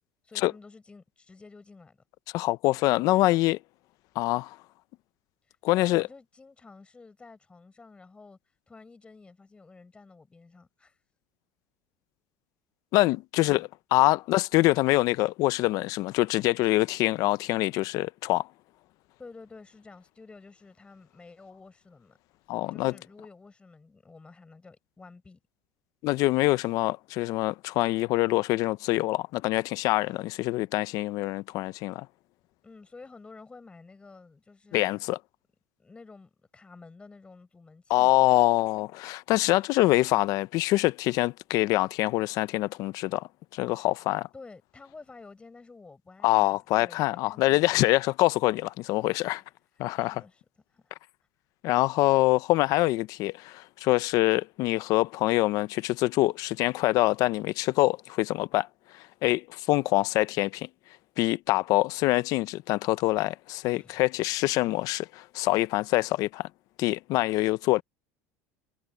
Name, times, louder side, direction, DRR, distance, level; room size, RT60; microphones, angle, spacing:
voice 1, 0.2-2.0 5.5-8.4 8.7-11.0 13.5-13.7 19.2-22.2 22.7-25.4 32.6-34.9 35.8-38.1 43.7-43.9 44.3-48.0 49.8-50.4 50.7-50.9 63.7-64.0, left 3 dB, 15° left, 6.6 m, -51 dB
voice 2, 2.3-3.6 4.2-4.6 5.6-6.0 12.9-18.5 22.5-22.9 26.0-32.1 34.7-35.2 37.9-44.3 46.2-49.4 49.8-50.2 51.6-58.7 58.9-60.7 61.2-66.5 66.8-67.8, left 19 dB, 60° left, 0.6 m, -25 dB
supercardioid pair, 125°, 7 cm